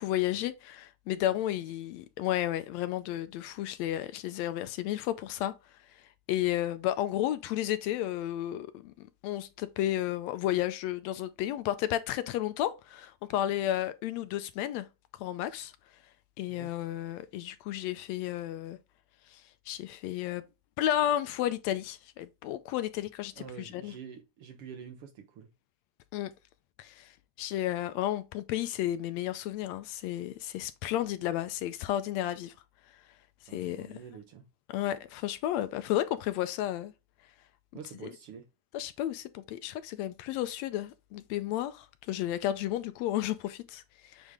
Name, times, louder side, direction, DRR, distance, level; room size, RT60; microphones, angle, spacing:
voice 1, 0.0-5.5 5.9-6.0 6.3-14.9 15.2-15.7 16.4-18.8 19.3-20.4 20.8-23.9 26.1-26.3 26.8-27.1 27.4-32.5 33.5-34.0 34.7-36.9 38.0-38.1 38.7-44.3, left 13 dB, 80° left, 1.7 m, -32 dB
voice 2, 23.4-25.5 33.5-34.5 37.7-38.5, right 7 dB, 65° right, 1.5 m, -47 dB
8.2 x 3.6 x 3.5 m
omnidirectional pair, 3.3 m